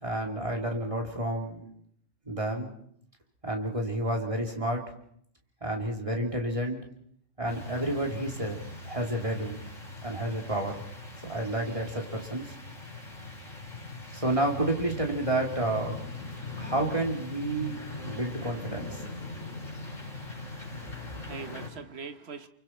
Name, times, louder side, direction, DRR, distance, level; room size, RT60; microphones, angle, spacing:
voice 1, 0.0-1.7 2.3-2.7 3.4-4.9 5.6-6.8 7.4-9.6 10.0-10.8 11.2-12.5 14.1-16.0 16.5-17.7 18.0-19.0, right 1 dB, 25° right, 1 dB, 3.0 m, -30 dB
sound 1, 7.5-21.7, left 2 dB, 85° left, 5.0 m, -41 dB
voice 2, 20.1-22.5, right 5 dB, 55° right, 10 dB, 1.4 m, -44 dB
29.0 x 24.0 x 4.4 m, 0.67 s
omnidirectional pair, 1.3 m